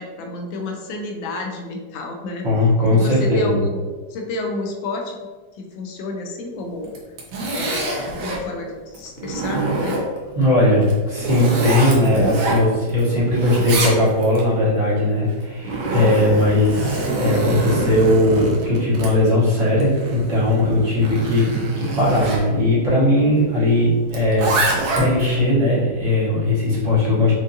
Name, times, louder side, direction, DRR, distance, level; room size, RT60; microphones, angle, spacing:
voice 1, 0.0-5.2 5.5-6.9 7.5-10.0 20.7-20.9, left 2 dB, 85° left, 2 dB, 1.4 m, -30 dB
voice 2, 2.4-3.6 7.4-7.5 10.4-27.3, left 1 dB, 45° right, -8 dB, 1.3 m, -18 dB
Zipper (clothing), 6.8-8.4 8.9-10.3 10.8-13.0 13.3-14.4 15.3-22.4 24.1-25.3, right 2 dB, 90° right, 1.5 m, -25 dB
4.9 x 2.5 x 2.6 m, 1.4 s
omnidirectional pair, 2.1 m